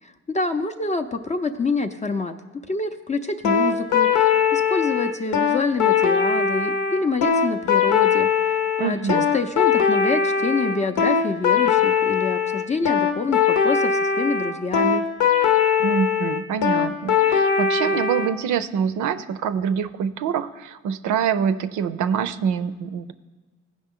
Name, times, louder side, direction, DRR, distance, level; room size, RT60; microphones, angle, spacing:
voice 1, 0.0-2.3 2.7-15.0, left 3 dB, 25° left, 5 dB, 0.4 m, -27 dB
sound 1, 3.4-18.3, left 7 dB, 90° left, 0.9 m, -20 dB
voice 2, 8.8-9.3 15.8-23.1, right 7 dB, 75° right, 12 dB, 0.5 m, -25 dB
15.5 x 5.2 x 3.7 m, 1.3 s
cardioid pair, 90°, 30 cm